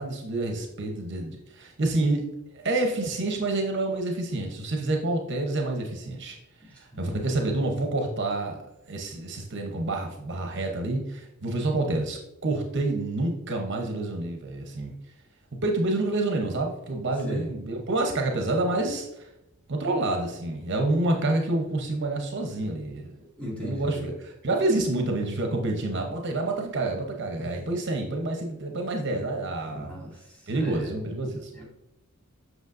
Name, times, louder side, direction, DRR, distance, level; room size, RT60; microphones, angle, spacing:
voice 1, 0.0-2.2 2.5-6.4 6.7-8.6 8.9-14.9 15.6-19.3 19.7-23.1 23.5-30.0 30.5-31.5, right 2 dB, 55° right, 2 dB, 0.8 m, -28 dB
voice 2, 23.4-24.0 27.4-27.6 29.7-30.9 31.5-31.7, equal, 5° left, -6 dB, 2.4 m, -38 dB
8.0 x 5.9 x 2.6 m, 0.89 s
head